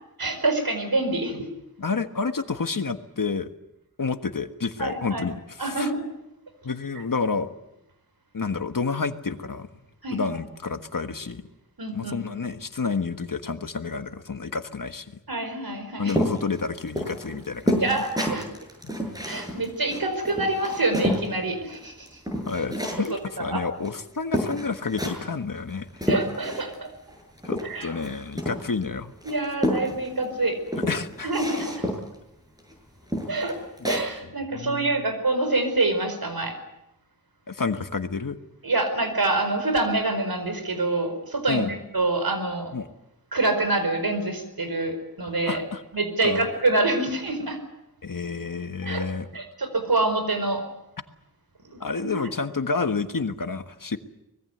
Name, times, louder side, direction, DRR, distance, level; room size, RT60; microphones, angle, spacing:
voice 1, 0.2-1.5 4.8-5.2 5.6-6.1 10.0-10.2 11.8-12.2 15.3-16.2 17.8-18.5 19.3-22.2 23.1-23.6 26.1-26.9 27.6-27.9 29.2-30.6 31.2-31.8 33.3-33.6 33.8-36.6 38.6-41.6 41.9-42.7 43.3-45.6 45.9-47.6 48.8-49.1 49.3-50.6 51.7-52.2, right 2 dB, 85° right, 8 dB, 4.8 m, -26 dB
voice 2, 1.8-3.5 4.0-5.9 6.6-7.5 8.3-9.7 10.1-11.4 11.9-15.1 16.0-17.8 22.5-26.1 27.4-29.1 30.9-31.3 34.5-35.0 37.5-38.4 41.5-41.7 42.7-42.9 45.4-45.8 46.2-46.5 48.0-49.3 51.8-54.0, left 4 dB, 65° left, 8 dB, 1.5 m, -29 dB
sound 1, 16.1-21.3 21.7-23.2 23.8-23.9 24.3-25.3 25.7-26.9 27.1-28.8 29.2-30.2 30.7-32.1 32.6-32.7 33.1-34.1, equal, 10° right, 7.4 m, -29 dB
25.0 x 20.5 x 8.0 m, 0.87 s
wide cardioid pair, 70°, 35 cm